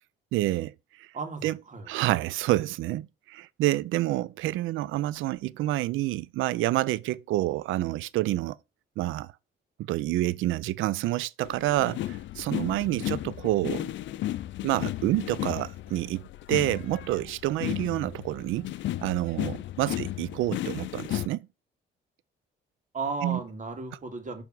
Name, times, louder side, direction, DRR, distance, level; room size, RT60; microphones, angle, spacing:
voice 1, 0.3-0.7 1.0-1.1 1.4-1.6 1.9-8.6 9.0-9.3 9.9-13.9 14.6-18.7 19.0-21.5 23.2-23.4, right 16 dB, 90° right, 0.5 m, -28 dB
voice 2, 1.1-2.0 12.8-13.1 19.8-20.0 22.9-24.4, right 4 dB, 40° right, 2.1 m, -35 dB
sound 1, 11.4-21.3, left 14 dB, 70° left, 0.5 m, -34 dB
7.0 x 3.5 x 6.0 m
cardioid pair, 90°, 20 cm